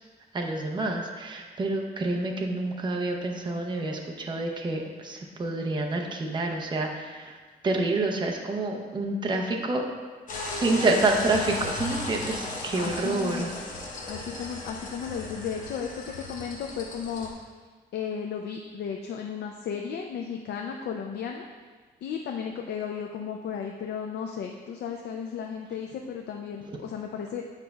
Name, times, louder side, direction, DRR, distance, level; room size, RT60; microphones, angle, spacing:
voice 1, 0.3-7.4 7.6-9.9 10.5-13.5 13.9-14.0, right 2 dB, 25° right, 1 dB, 0.6 m, -28 dB
sound 1, 10.3-17.3, left 2 dB, 50° left, 0.9 m, -36 dB
voice 2, 12.7-13.6 14.1-17.3 17.9-21.5 22.0-27.5, left 7 dB, 85° left, 2 dB, 0.4 m, -34 dB
8.1 x 5.2 x 2.3 m, 1.4 s
wide cardioid pair, 155°, 17 cm